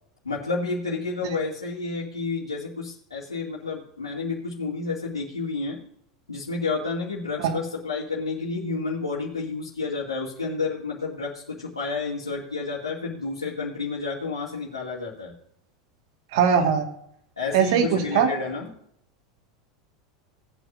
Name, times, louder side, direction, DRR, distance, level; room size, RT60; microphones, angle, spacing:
voice 1, 0.2-5.8 6.3-15.3 17.4-18.7, left 4 dB, 85° left, -8 dB, 2.2 m, -30 dB
voice 2, 16.3-16.9 17.5-18.3, right 7 dB, 60° right, 5 dB, 1.8 m, -21 dB
18.5 x 9.1 x 2.6 m, 0.70 s
figure-of-eight pair, 85°, 3 cm